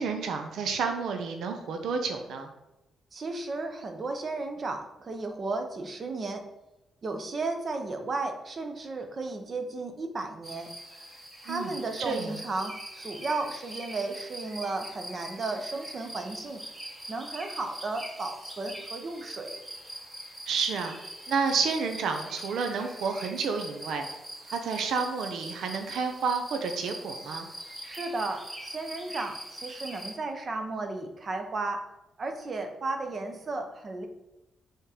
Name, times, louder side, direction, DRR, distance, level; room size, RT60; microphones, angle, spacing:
voice 1, 0.0-2.5 11.5-11.7 12.0-12.3 20.5-21.0 21.3-24.1 24.5-27.5, right 5 dB, 75° right, 5 dB, 0.6 m, -30 dB
voice 2, 3.1-6.4 7.0-10.7 11.4-16.6 17.1-19.6 27.8-31.9 32.2-34.1, right 3 dB, 35° right, 5 dB, 0.8 m, -34 dB
sound 1, 10.4-30.1, equal, 15° right, 1.2 m, -43 dB
5.3 x 3.7 x 4.9 m, 0.95 s
cardioid pair, 135°, 0 cm